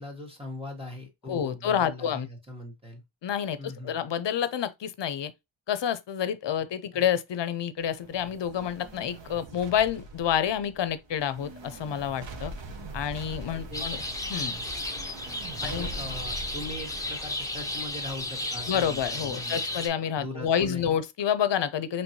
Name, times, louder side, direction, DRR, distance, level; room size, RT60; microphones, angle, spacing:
voice 1, 0.0-3.0 3.6-4.0 6.9-7.0 13.5-13.9 15.6-19.6 20.2-21.0, left 1 dB, 10° right, 1.2 m, -40 dB
voice 2, 1.3-2.3 3.2-5.3 5.7-12.5 12.9-14.0 14.3-14.5 15.6-15.9 18.7-22.0, left 9 dB, 60° left, 0.6 m, -28 dB
sound 1, 7.8-19.1, right 2 dB, 65° right, 1.0 m, -43 dB
sound 2, 13.7-19.9, left 2 dB, 5° left, 0.7 m, -34 dB
4.4 x 3.2 x 2.8 m
wide cardioid pair, 140°, 48 cm